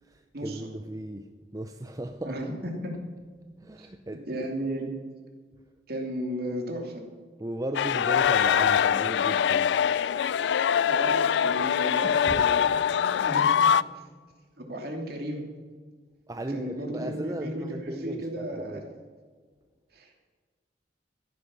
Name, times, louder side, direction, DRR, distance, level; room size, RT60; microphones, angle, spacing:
voice 1, 0.0-2.4 3.6-4.3 7.4-9.9 11.4-11.6 12.0-12.5 16.3-18.9, right 1 dB, 20° right, 6 dB, 0.5 m, -36 dB
voice 2, 4.3-5.0 5.9-7.0 10.9-14.0 14.6-15.4 16.5-18.8 19.9-20.1, right 1 dB, 55° right, 1 dB, 2.8 m, -34 dB
sound 1, 7.7-13.8, left 8 dB, 70° left, 0.3 m, -23 dB
15.0 x 9.9 x 6.4 m, 1.5 s
head